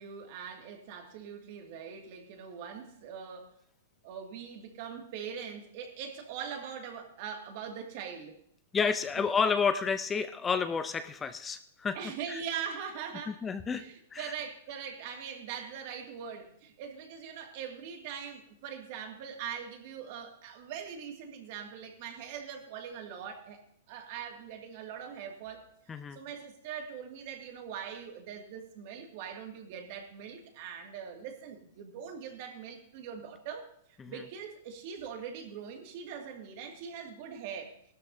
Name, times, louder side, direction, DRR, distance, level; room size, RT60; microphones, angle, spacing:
voice 1, 0.0-3.5 4.0-8.3 11.9-13.4 13.7-25.6 26.1-33.7 34.1-37.7, right 7 dB, 50° right, 3 dB, 2.1 m, -42 dB
voice 2, 8.7-12.0 12.3-12.4 13.3-13.8 14.1-14.3 25.9-26.2 34.0-34.2, left 5 dB, 15° left, 11 dB, 0.4 m, -30 dB
16.0 x 12.5 x 2.7 m, 0.67 s
hypercardioid pair, 145°, 0 cm